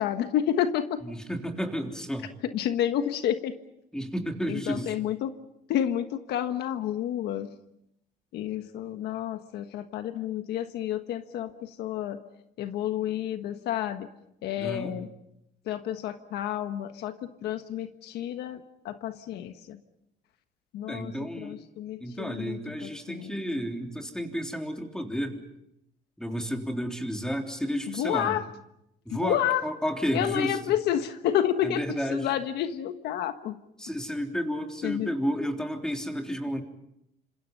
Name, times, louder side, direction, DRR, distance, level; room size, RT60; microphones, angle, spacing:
voice 1, 0.0-1.0 2.4-3.5 4.5-5.3 5.7-7.5 8.3-12.2 12.6-14.1 14.4-15.1 15.7-17.1 17.4-19.8 20.7-21.1 21.4-23.3 28.0-28.5 29.2-29.6 30.1-33.5 34.8-35.1, left 10 dB, 75° left, 8 dB, 1.4 m, -30 dB
voice 2, 1.0-2.3 3.9-4.9 14.6-15.0 20.9-21.6 22.0-25.4 26.2-28.4 29.1-30.6 31.6-32.3 33.8-36.6, equal, 5° left, 3 dB, 3.5 m, -32 dB
28.0 x 26.5 x 5.5 m, 0.81 s
cardioid pair, 110°, 17 cm